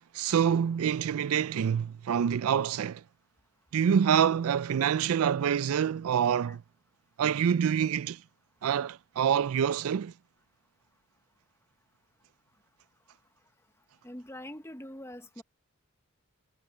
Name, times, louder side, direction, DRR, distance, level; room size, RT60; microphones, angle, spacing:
voice 1, 0.1-3.0 3.7-6.6 7.2-8.2 8.6-10.1, right 8 dB, 70° right, 0.4 m, -26 dB
voice 2, 14.0-15.4, left 1 dB, 10° left, 0.9 m, -43 dB
head